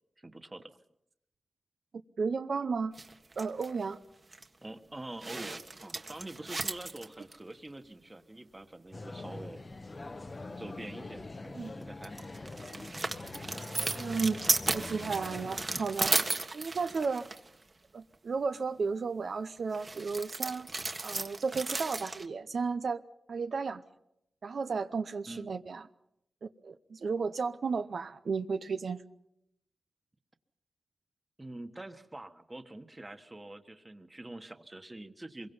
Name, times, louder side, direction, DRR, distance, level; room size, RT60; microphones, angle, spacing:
voice 1, 0.2-0.7 4.6-9.6 10.6-12.3 25.3-25.5 31.4-35.5, right 1 dB, 25° right, 8 dB, 1.5 m, -45 dB
voice 2, 2.2-2.9 3.4-4.0 11.5-11.7 14.0-14.4 14.7-16.1 16.5-17.3 17.9-20.7 21.0-23.0 23.3-23.8 24.4-25.8 26.4-29.0, right 4 dB, 70° right, 9 dB, 0.7 m, -33 dB
sound 1, 2.9-3.9 4.3-4.4 5.2-7.4 11.8-17.5 19.7-22.3, right 3 dB, 40° right, 1.6 m, -35 dB
sound 2, 8.9-15.7, left 2 dB, 35° left, 1.1 m, -43 dB
25.0 x 23.0 x 5.5 m, 0.82 s
wide cardioid pair, 75°, 0 cm